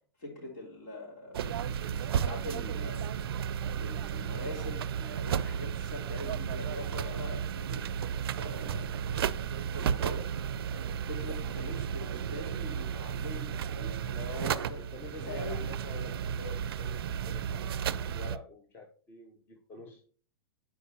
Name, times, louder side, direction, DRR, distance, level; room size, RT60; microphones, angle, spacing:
voice 1, 0.2-3.0 3.7-7.8 8.3-10.2 10.8-14.8 15.1-15.7, left 2 dB, 60° left, -2 dB, 3.5 m, -43 dB
sound 1, 1.3-18.4, right 8 dB, 90° right, 0.4 m, -33 dB
sound 2, 3.6-4.4 5.9-6.4, right 8 dB, 15° right, 0.4 m, -56 dB
sound 3, 6.1-18.1, left 1 dB, 75° left, 3.0 m, -55 dB
voice 2, 14.1-20.0, left 3 dB, 15° left, 2 dB, 0.7 m, -47 dB
10.0 x 4.6 x 2.9 m, 0.43 s
supercardioid pair, 150°, 12 cm